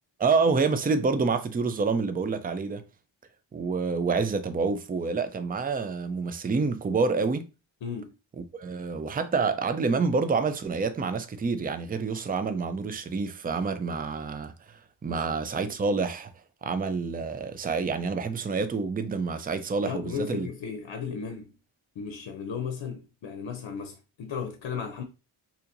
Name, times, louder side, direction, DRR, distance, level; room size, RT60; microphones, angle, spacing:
voice 1, 0.2-2.8 3.5-7.5 8.4-16.3 16.6-20.5, right 4 dB, 20° right, 0.4 m, -28 dB
voice 2, 7.8-8.1 15.1-15.2 19.8-21.5 22.0-25.0, left 6 dB, 65° left, 0.7 m, -35 dB
4.2 x 2.8 x 2.6 m
cardioid pair, 80°, 48 cm